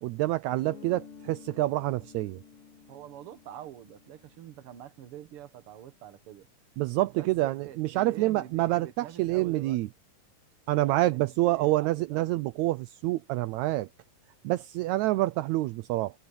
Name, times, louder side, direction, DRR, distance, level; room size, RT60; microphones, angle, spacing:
voice 1, 0.0-2.4 6.8-9.9 10.7-13.9 14.4-16.1, right 17 dB, 80° right, 1.7 m, -27 dB
Guitar, 0.6-5.2, left 6 dB, 45° left, 3.2 m, -52 dB
voice 2, 2.9-6.5 7.1-9.8 10.8-12.4, right 11 dB, 55° right, 1.8 m, -45 dB
omnidirectional pair, 3.8 m